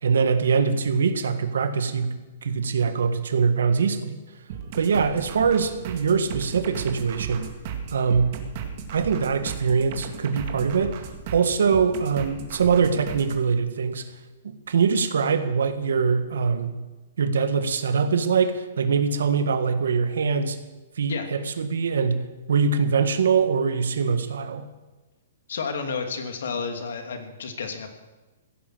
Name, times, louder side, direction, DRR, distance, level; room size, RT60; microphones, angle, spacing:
voice 1, 0.0-2.1 2.4-4.2 4.8-7.5 7.9-8.4 8.9-11.0 11.3-14.1 14.7-16.8 17.2-20.6 21.0-24.6, right 5 dB, 90° right, 9 dB, 1.7 m, -23 dB
sound 1, 4.5-13.4, right 7 dB, 35° right, 2.0 m, -36 dB
voice 2, 25.5-27.9, left 5 dB, 75° left, 5 dB, 2.8 m, -31 dB
16.0 x 10.5 x 7.9 m, 1.2 s
hypercardioid pair, 170°, 0 cm